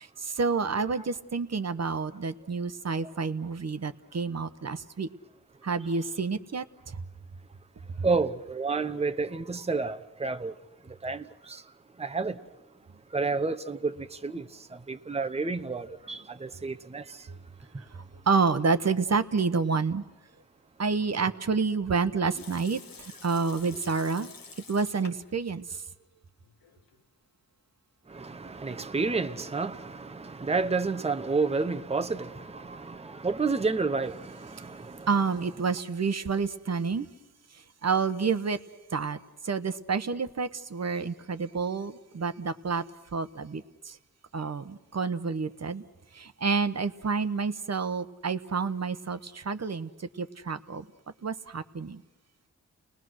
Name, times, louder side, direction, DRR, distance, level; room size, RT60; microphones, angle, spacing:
voice 1, 0.0-5.1 5.6-7.0 8.0-8.1 17.3-17.4 17.9-20.0 20.8-24.3 24.7-25.8 35.1-37.1 37.8-38.6 38.9-39.2 39.4-42.8 43.1-44.0 44.3-45.8 46.1-50.9 51.2-52.0, right 5 dB, 50° right, 1.0 m, -29 dB
voice 2, 8.0-10.5 11.0-11.6 12.0-12.4 13.1-14.5 14.9-17.2 28.1-35.1, right 4 dB, 20° right, 0.9 m, -30 dB
Water tap faucet / Sink (filling or washing) / Liquid, 22.3-25.4 25.7-25.8 26.4-27.0, left 5 dB, 80° left, 1.5 m, -49 dB
29.5 x 19.5 x 6.3 m
cardioid pair, 55°, 34 cm